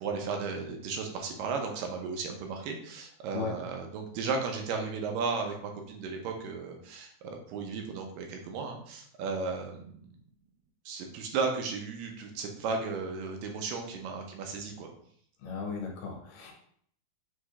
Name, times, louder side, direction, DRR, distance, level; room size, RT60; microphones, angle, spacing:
voice 1, 0.0-5.6 5.9-10.1 10.9-14.9, right 4 dB, 85° right, 3 dB, 2.3 m, -35 dB
voice 2, 15.4-16.5, left 5 dB, 75° left, 1 dB, 2.3 m, -37 dB
6.4 x 3.0 x 2.4 m, 0.64 s
omnidirectional pair, 4.0 m